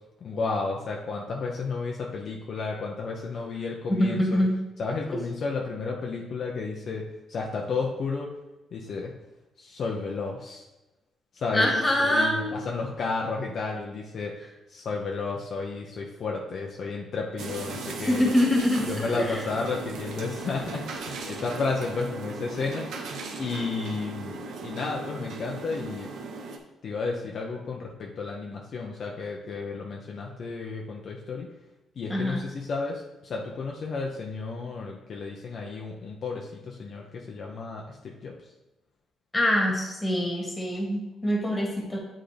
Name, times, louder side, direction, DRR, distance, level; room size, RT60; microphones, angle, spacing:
voice 1, 0.2-4.4 4.8-7.0 7.3-8.3 8.7-9.1 9.6-10.6 11.3-14.3 14.7-18.3 18.9-22.9 23.4-26.1 26.8-31.5 32.0-38.3, left 4 dB, 55° left, -1 dB, 0.7 m, -32 dB
voice 2, 3.9-4.6 5.1-5.2 11.5-12.5 18.0-19.4 32.1-32.4 39.3-42.0, left 1 dB, 15° left, -1 dB, 1.9 m, -24 dB
sound 1, 17.4-26.6, right 3 dB, 75° right, 0.7 m, -37 dB
8.0 x 3.7 x 3.4 m, 1.0 s
cardioid pair, 90°, 0 cm